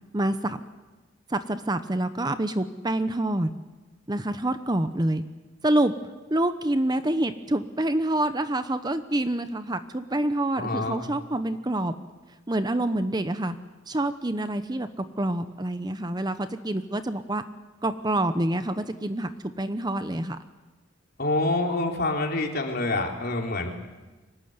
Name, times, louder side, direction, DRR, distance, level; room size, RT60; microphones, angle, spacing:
voice 1, 0.1-0.6 1.3-3.5 4.1-5.2 5.6-5.9 6.3-11.9 12.5-13.6 13.9-17.4 17.8-19.3 19.6-20.4, right 1 dB, 20° right, 10 dB, 0.9 m, -27 dB
voice 2, 10.6-11.0 21.2-23.7, left 2 dB, 50° left, 2 dB, 3.8 m, -26 dB
24.5 x 20.0 x 9.6 m, 1.2 s
head